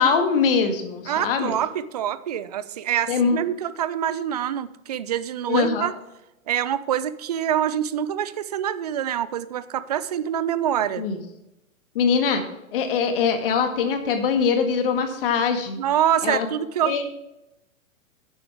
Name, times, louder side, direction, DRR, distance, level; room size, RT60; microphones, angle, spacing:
voice 1, 0.0-1.5 3.1-3.4 5.5-5.9 11.0-11.2 12.0-12.4 12.7-15.8 16.2-16.5 16.9-17.0, left 6 dB, 45° left, 6 dB, 1.8 m, -22 dB
voice 2, 1.1-5.9 6.5-11.0 15.8-17.1, right 10 dB, 30° right, 16 dB, 0.4 m, -25 dB
11.0 x 9.2 x 3.5 m, 0.92 s
figure-of-eight pair, 115°, 40 cm